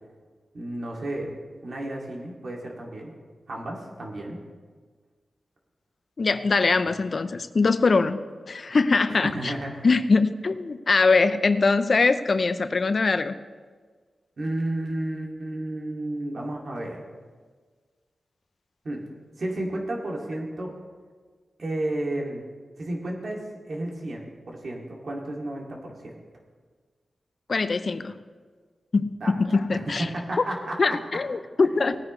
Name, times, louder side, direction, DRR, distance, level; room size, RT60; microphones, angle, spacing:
voice 1, 0.5-1.4 1.6-3.1 3.5-4.4 9.1-9.9 14.4-17.0 18.8-19.0 19.4-20.7 21.6-22.4 22.8-23.4 23.7-26.2 29.2-29.4 29.7-30.8, right 1 dB, 65° right, -1 dB, 2.4 m, -32 dB
voice 2, 6.2-8.2 8.5-9.5 9.8-13.4 27.5-28.1 28.9-30.1 30.8-32.0, left 4 dB, 55° left, 11 dB, 0.6 m, -22 dB
18.0 x 9.5 x 3.2 m, 1.5 s
cardioid pair, 70°, 0 cm